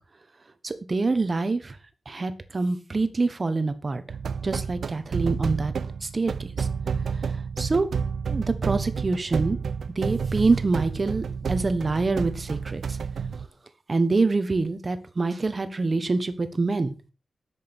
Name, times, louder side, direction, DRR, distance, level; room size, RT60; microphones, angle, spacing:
voice 1, 0.6-1.8 2.0-4.0 4.4-5.7 6.0-6.7 7.1-7.9 8.3-9.6 9.9-13.0 13.9-16.9, right 3 dB, 30° right, 10 dB, 1.3 m, -26 dB
sound 1, 4.1-13.5, right 6 dB, 90° right, 0.7 m, -30 dB
11.0 x 7.6 x 6.1 m, 0.34 s
wide cardioid pair, 160°, 0 cm